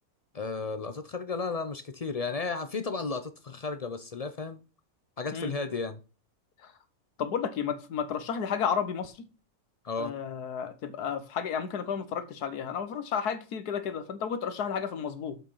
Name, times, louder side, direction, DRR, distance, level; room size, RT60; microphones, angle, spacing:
voice 1, 0.3-4.6 5.2-6.0 9.8-10.1, left 4 dB, 50° left, 0.4 m, -33 dB
voice 2, 7.2-9.1 10.0-15.4, left 7 dB, 90° left, 1.6 m, -32 dB
7.0 x 5.6 x 5.6 m
omnidirectional pair, 1.6 m